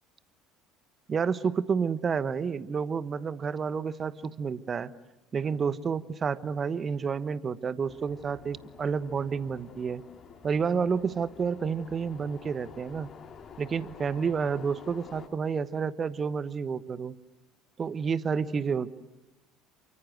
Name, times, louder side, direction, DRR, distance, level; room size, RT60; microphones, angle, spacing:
voice 1, 1.1-4.9 5.3-10.0 10.4-13.1 13.6-17.2 17.8-18.9, right 6 dB, 35° right, 15 dB, 1.2 m, -30 dB
sound 1, 7.9-15.3, left 6 dB, 40° left, 3.6 m, -49 dB
28.5 x 24.5 x 7.9 m, 0.98 s
hypercardioid pair, 65°, 0 cm